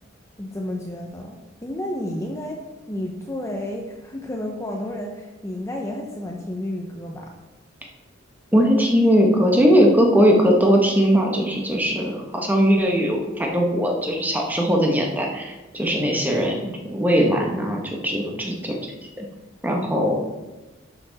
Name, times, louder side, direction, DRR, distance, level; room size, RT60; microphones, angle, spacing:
voice 1, 0.4-7.3, left 1 dB, 15° left, 1 dB, 0.8 m, -31 dB
voice 2, 8.5-18.7 19.2-19.3 19.6-20.2, equal, 10° right, 0 dB, 1.3 m, -19 dB
11.5 x 6.1 x 4.1 m, 1.1 s
head